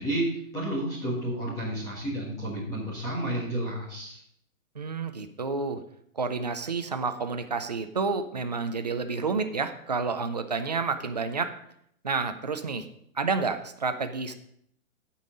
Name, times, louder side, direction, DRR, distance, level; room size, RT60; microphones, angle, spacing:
voice 1, 0.0-4.2, right 1 dB, 10° left, -6 dB, 1.6 m, -31 dB
voice 2, 4.8-5.8 6.2-11.5 12.0-12.9 13.2-14.3, right 4 dB, 30° right, 8 dB, 0.4 m, -29 dB
15.5 x 5.5 x 3.8 m, 0.71 s
hypercardioid pair, 175°, 41 cm